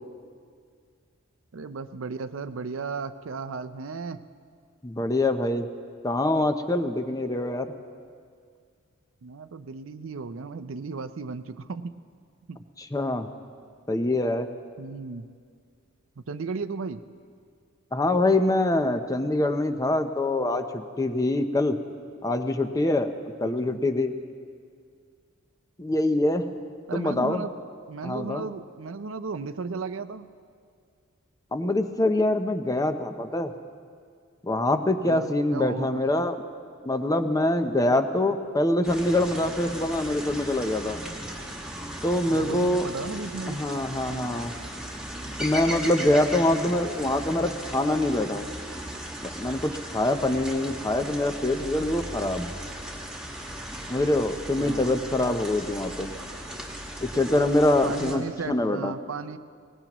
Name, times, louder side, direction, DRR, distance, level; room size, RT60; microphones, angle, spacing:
voice 1, 1.5-4.2 9.2-11.9 12.5-12.6 14.8-15.3 16.2-17.0 23.4-23.8 26.9-27.5 27.9-30.3 35.1-36.0 42.3-43.6 44.1-44.4 54.6-54.9 57.8-59.4, right 4 dB, 65° right, 12 dB, 0.5 m, -35 dB
voice 2, 4.8-5.7 6.0-7.7 12.8-13.3 13.9-14.5 17.9-21.8 22.2-23.1 23.4-24.1 25.8-26.4 26.9-27.5 28.0-28.5 31.5-33.5 34.4-36.4 36.8-41.0 42.0-42.9 43.5-44.5 45.4-48.5 49.2-52.5 53.9-56.1 57.0-58.9, left 1 dB, 15° left, 8 dB, 0.6 m, -24 dB
sound 1, 38.8-58.2, equal, 5° right, 1.7 m, -37 dB
22.0 x 19.0 x 3.0 m, 2.1 s
head